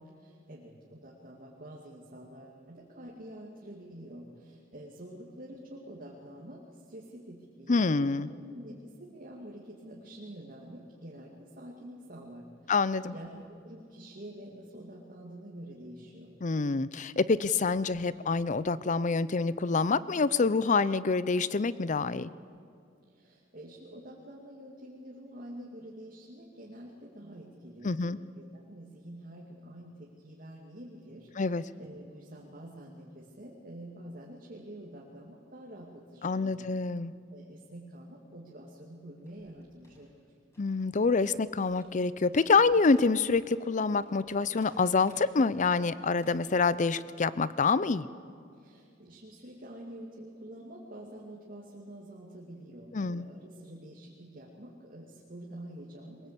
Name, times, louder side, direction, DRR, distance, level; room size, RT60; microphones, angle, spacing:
voice 1, 0.2-16.4 23.1-36.6 37.3-40.2 48.6-56.3, right 1 dB, 45° right, -3 dB, 2.4 m, -47 dB
voice 2, 7.7-8.3 12.7-13.1 16.4-22.3 27.8-28.2 31.4-31.6 36.2-37.1 40.6-48.1 52.9-53.3, left 4 dB, 40° left, 17 dB, 0.5 m, -26 dB
sound 1, 39.2-40.8 41.1-41.5 41.7-42.0 42.3-46.6, equal, 15° left, 5.5 m, -59 dB
22.5 x 21.0 x 8.3 m, 2.3 s
head